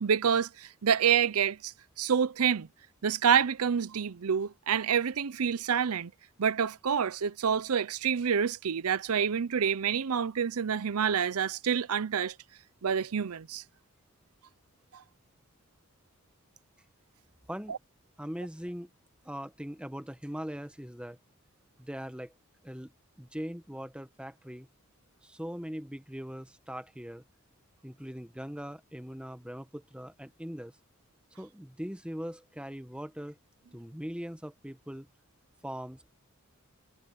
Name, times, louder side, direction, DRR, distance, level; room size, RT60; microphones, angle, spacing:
voice 1, 0.0-1.7 2.0-2.7 3.0-6.1 6.4-12.3 12.8-13.6 14.9-15.0 17.7-17.8, right 7 dB, 85° right, 0.6 m, -27 dB
voice 2, 18.2-18.9 19.2-21.2 21.8-22.3 22.6-22.9 23.2-24.7 25.2-27.2 27.8-30.7 31.4-33.4 33.7-35.1 35.6-36.1, equal, 5° right, 1.1 m, -40 dB
head